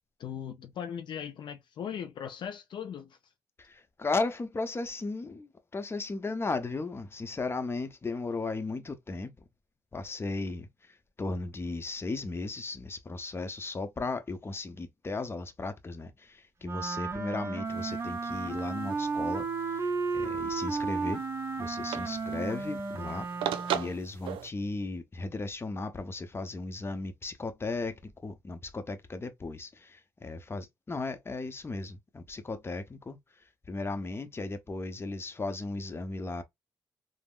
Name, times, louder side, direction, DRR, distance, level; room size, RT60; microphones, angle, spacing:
voice 1, 0.2-3.2, left 8 dB, 60° left, 0.4 m, -39 dB
voice 2, 3.6-9.3 9.9-10.7 11.2-21.2 21.6-23.3 23.7-33.2 33.7-36.4, left 3 dB, 25° left, 0.7 m, -36 dB
Wind instrument woodwind instrument, 16.6-24.0, right 4 dB, 30° right, 0.6 m, -33 dB
sound 1, 17.7-24.5, right 9 dB, 80° right, 0.4 m, -40 dB
3.5 x 2.0 x 2.4 m
supercardioid pair, 60°, 9 cm